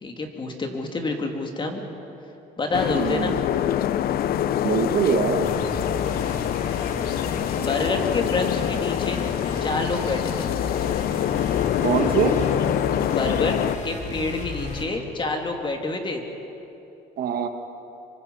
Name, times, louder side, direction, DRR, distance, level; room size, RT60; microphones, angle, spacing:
voice 1, 0.0-1.8 2.6-3.3 7.6-9.2 9.6-10.5 13.1-13.5 13.8-16.2, left 3 dB, 30° left, 3 dB, 2.9 m, -28 dB
sound 1, 2.7-13.8, left 11 dB, 65° left, 0.7 m, -25 dB
voice 2, 3.0-3.4 4.6-5.5 11.8-12.4 17.2-17.5, right 7 dB, 60° right, 6 dB, 1.8 m, -23 dB
sound 2, 5.4-14.8, left 4 dB, 45° left, 3.8 m, -33 dB
27.0 x 24.0 x 5.7 m, 3.0 s
cardioid pair, 110°, 17 cm